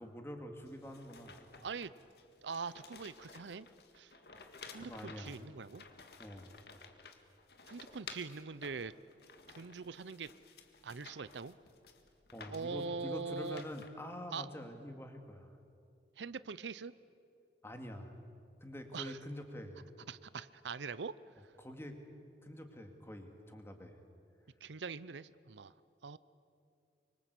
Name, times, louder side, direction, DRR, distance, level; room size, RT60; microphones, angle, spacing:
voice 1, 0.0-1.4 4.7-5.4 6.2-6.6 12.3-15.6 17.6-18.1 18.6-19.9 21.6-22.0 22.4-24.0, equal, 15° left, 5 dB, 2.3 m, -46 dB
sound 1, 0.6-13.9, left 5 dB, 65° left, 1.9 m, -55 dB
voice 2, 1.6-1.9 2.4-3.7 4.0-4.1 4.7-5.8 7.7-8.9 9.6-10.3 10.8-11.5 12.5-13.6 14.3-14.5 16.2-16.9 18.9-19.2 20.1-21.1 24.6-25.7 26.0-26.2, right 5 dB, 85° right, 17 dB, 0.6 m, -42 dB
25.0 x 24.5 x 8.3 m, 2.5 s
head